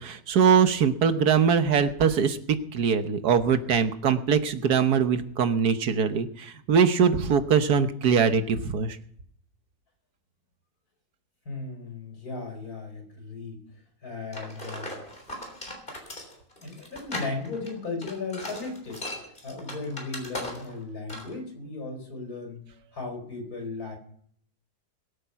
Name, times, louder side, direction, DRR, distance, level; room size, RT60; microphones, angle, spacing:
voice 1, 0.0-9.0, right 6 dB, 90° right, 9 dB, 1.7 m, -22 dB
voice 2, 11.4-13.6 14.0-14.9 16.6-19.1 19.4-22.6 22.9-24.0, left 3 dB, 70° left, 3 dB, 5.1 m, -36 dB
sound 1, 14.3-20.8 21.1-21.3, left 1 dB, 30° left, 3.8 m, -38 dB
21.5 x 8.7 x 5.8 m, 0.62 s
omnidirectional pair, 1.6 m